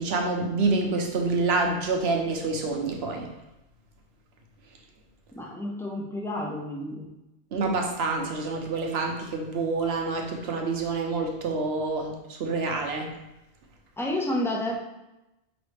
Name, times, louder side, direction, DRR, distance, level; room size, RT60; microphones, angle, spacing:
voice 1, 0.0-3.3 7.5-12.1 12.4-13.1, right 3 dB, 65° right, 2 dB, 1.0 m, -27 dB
voice 2, 5.3-7.1 14.0-14.8, left 1 dB, 5° left, -2 dB, 0.4 m, -30 dB
5.1 x 3.1 x 3.2 m, 0.94 s
omnidirectional pair, 1.2 m